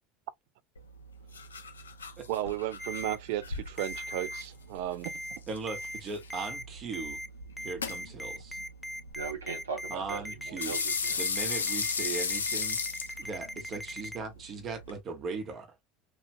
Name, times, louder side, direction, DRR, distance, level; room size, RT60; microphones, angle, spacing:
sound 1, 0.8-15.0, left 5 dB, 85° left, 0.5 m, -37 dB
voice 1, 2.3-5.4, right 13 dB, 65° right, 0.4 m, -34 dB
Ringtone, 2.8-3.2 3.8-4.4 5.0-5.4 5.7-6.0 6.3-6.6 6.9-7.3 7.6-14.2, equal, 5° left, 0.5 m, -39 dB
voice 2, 5.5-7.2 7.6-8.6 9.9-10.8 11.2-15.8, right 4 dB, 40° right, 1.1 m, -38 dB
voice 3, 9.1-11.2, right 5 dB, 85° right, 0.8 m, -39 dB
3.1 x 2.4 x 2.5 m
hypercardioid pair, 75°, 0 cm